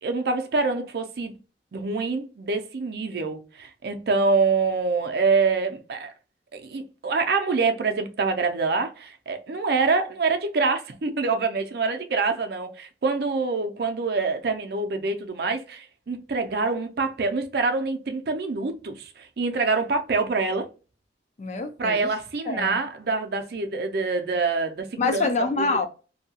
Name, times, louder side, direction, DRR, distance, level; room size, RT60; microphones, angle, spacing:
voice 1, 0.0-1.4 1.7-6.1 6.5-20.7 21.8-25.3 25.7-25.8, right 4 dB, 60° right, 0.5 m, -25 dB
voice 2, 21.4-22.1 22.5-22.8 25.0-25.9, left 3 dB, 40° left, 0.4 m, -26 dB
2.7 x 2.3 x 2.7 m
head